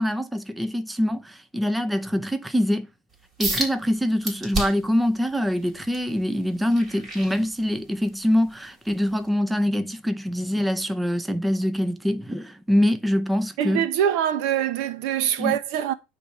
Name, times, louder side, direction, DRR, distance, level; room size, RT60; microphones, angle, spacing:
voice 1, 0.0-2.9 3.4-13.9 15.4-15.6, equal, 5° right, 0.7 m, -24 dB
sound 1, 3.4-3.7 4.2-4.9 5.4-8.0 8.5-8.7 9.3-9.4, right 2 dB, 25° right, 3.5 m, -30 dB
voice 2, 13.6-15.9, right 10 dB, 65° right, 0.9 m, -24 dB
9.8 x 3.4 x 5.8 m
supercardioid pair, 135°, 0 cm